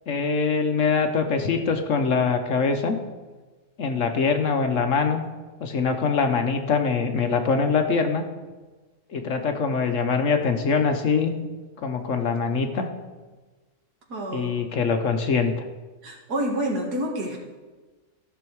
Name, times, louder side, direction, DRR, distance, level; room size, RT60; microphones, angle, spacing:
voice 1, 0.1-3.0 3.8-5.2 5.6-8.2 9.1-11.3 11.8-12.9 14.3-15.6, left 5 dB, 60° left, 6 dB, 1.1 m, -23 dB
voice 2, 14.1-14.5 16.0-17.4, right 1 dB, 80° right, 1 dB, 2.2 m, -28 dB
14.0 x 6.2 x 4.6 m, 1.3 s
omnidirectional pair, 1.7 m